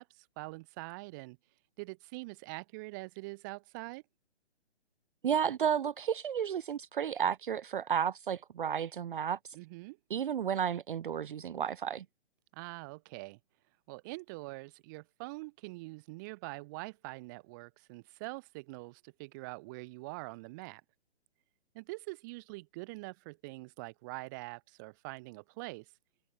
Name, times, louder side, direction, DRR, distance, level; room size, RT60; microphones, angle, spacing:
voice 1, 0.0-1.4 1.8-4.0 9.5-10.0 12.5-13.4 13.9-20.8 21.7-25.9, right 25 dB, 20° right, 0.7 m, -44 dB
voice 2, 5.2-9.4 10.1-12.1, right 8 dB, 50° right, 0.6 m, -32 dB
figure-of-eight pair, 135°, 33 cm